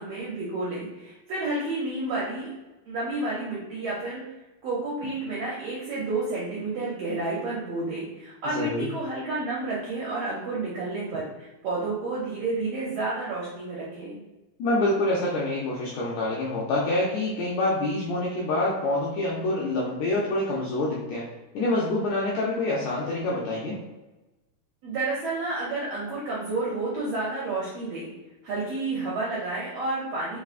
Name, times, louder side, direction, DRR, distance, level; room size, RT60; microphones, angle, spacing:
voice 1, 0.0-2.5 2.9-4.2 4.6-14.2 24.8-28.1 28.4-30.4, right 2 dB, 75° right, -6 dB, 1.5 m, -30 dB
voice 2, 8.5-8.9 14.6-21.3 21.5-23.8, left 2 dB, 80° left, -5 dB, 1.6 m, -26 dB
4.7 x 3.4 x 2.4 m, 1.1 s
omnidirectional pair, 3.8 m